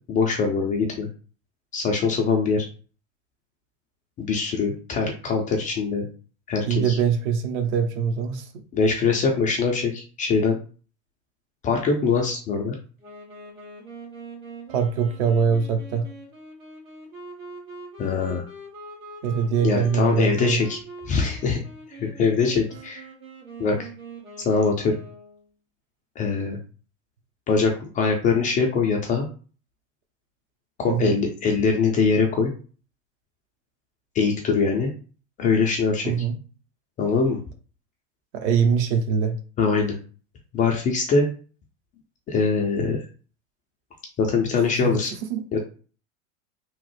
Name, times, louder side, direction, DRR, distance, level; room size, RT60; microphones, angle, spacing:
voice 1, 0.1-1.1 1.7-2.6 4.2-6.1 6.5-7.0 8.7-10.6 11.6-12.7 18.0-18.4 19.6-20.8 21.1-21.6 22.0-23.1 23.6-23.9 24.4-25.0 26.2-26.6 27.5-29.3 30.8-32.5 34.1-34.9 35.4-36.1 37.0-37.4 39.6-39.9 40.5-41.3 42.3-43.0 44.2-45.1 45.5-45.6, left 4 dB, 20° left, 1 dB, 0.3 m, -22 dB
voice 2, 6.7-8.6 14.7-16.1 19.2-20.6 30.9-31.2 36.0-36.4 38.3-39.4 44.8-45.0 45.3-45.4, right 6 dB, 55° right, 6 dB, 0.7 m, -23 dB
Wind instrument woodwind instrument, 13.0-25.5, right 2 dB, 90° right, 1.2 m, -43 dB
3.0 x 2.0 x 3.1 m, 0.39 s
hypercardioid pair, 95°, 40 cm